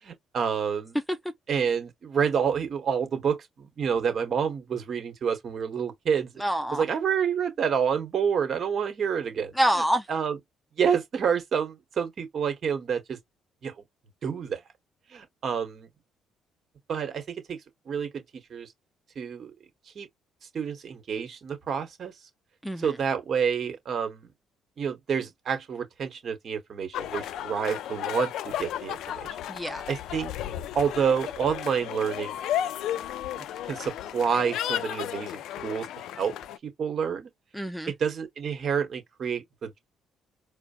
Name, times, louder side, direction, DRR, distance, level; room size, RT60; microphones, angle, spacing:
voice 1, 0.0-1.0 1.5-6.3 6.7-9.6 10.1-10.4 10.8-13.2 13.6-13.7 14.2-14.6 15.1-15.9 16.9-17.6 17.9-18.7 19.1-19.5 19.9-20.1 20.5-22.1 22.8-24.3 24.8-29.4 29.9-30.3 30.7-32.4 33.3-35.9 36.1-36.3 36.6-37.3 38.0-39.8, right 7 dB, 55° right, 1.5 m, -28 dB
voice 2, 6.4-6.8 9.5-10.1 22.6-23.0 29.5-29.8 37.5-37.9, equal, ahead, 0.6 m, -26 dB
sound 1, 26.9-36.6, left 11 dB, 75° left, 0.4 m, -33 dB
4.4 x 2.2 x 2.7 m
supercardioid pair, 70°, 0 cm